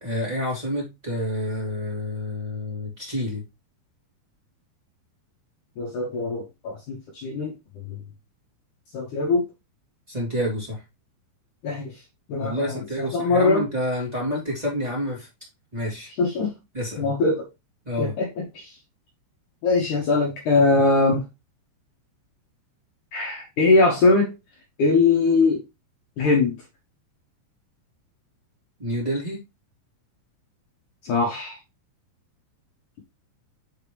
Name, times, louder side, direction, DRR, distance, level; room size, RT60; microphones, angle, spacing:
voice 1, 0.0-3.4 10.1-10.8 12.4-15.3 15.7-16.1 16.7-17.1 17.8-18.1 28.8-29.4, equal, 15° right, 1.7 m, -28 dB
voice 2, 5.8-8.0 8.9-9.5 11.6-12.0 12.3-13.6 16.2-16.5 17.0-17.5 18.0-18.8 19.6-21.3 23.1-24.3 24.8-25.6 26.2-26.5 31.0-31.6, left 3 dB, 80° left, 1.8 m, -22 dB
6.5 x 5.1 x 3.1 m
omnidirectional pair, 5.5 m